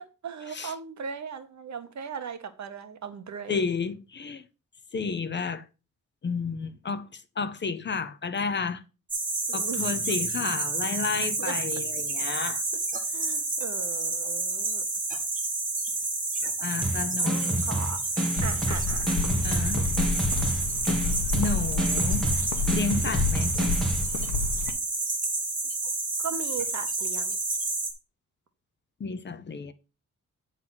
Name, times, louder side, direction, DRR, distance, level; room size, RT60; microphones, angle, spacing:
voice 1, 0.0-3.7 9.5-10.2 11.4-11.6 13.1-14.8 16.8-16.9 17.2-18.0 18.4-19.1 26.2-27.4, right 6 dB, 65° right, 1.2 m, -38 dB
voice 2, 3.5-4.4 4.9-5.6 6.2-8.8 9.5-12.6 16.6-17.7 19.4-19.8 21.3-22.3 22.7-23.5 29.0-29.7, left 5 dB, 35° left, 0.6 m, -31 dB
sound 1, 9.1-27.9, right 3 dB, 25° right, 1.9 m, -30 dB
sound 2, 16.8-24.0, right 1 dB, ahead, 1.9 m, -29 dB
sound 3, 18.4-24.7, left 4 dB, 70° left, 1.1 m, -30 dB
9.0 x 3.9 x 5.9 m
wide cardioid pair, 170°, 31 cm